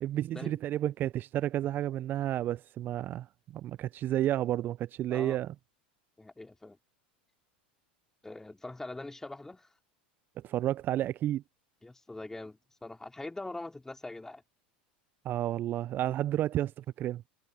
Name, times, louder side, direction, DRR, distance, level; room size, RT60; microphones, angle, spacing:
voice 1, 0.0-3.3 3.5-5.5 10.4-11.4 15.2-17.2, right 13 dB, 40° right, 0.5 m, -31 dB
voice 2, 5.1-5.4 6.2-6.8 8.2-9.7 11.8-14.4, left 2 dB, 10° left, 2.8 m, -43 dB
hypercardioid pair, 85°, 5 cm